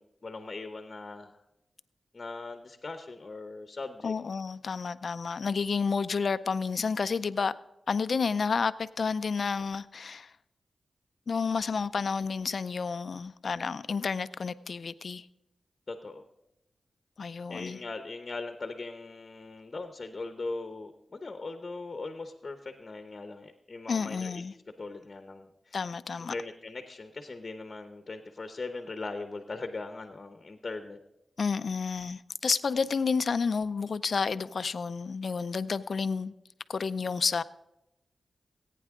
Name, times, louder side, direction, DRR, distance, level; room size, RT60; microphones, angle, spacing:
voice 1, 0.0-1.4 2.1-4.1 15.9-16.2 17.5-24.4 24.8-25.8 26.2-31.0, left 3 dB, 45° left, 0.9 m, -40 dB
voice 2, 4.0-7.5 7.9-10.3 11.3-15.3 17.2-17.8 23.9-24.5 25.7-26.3 31.4-36.3 36.7-37.4, left 5 dB, 70° left, 0.4 m, -30 dB
18.0 x 9.3 x 3.7 m
cardioid pair, 70°, 0 cm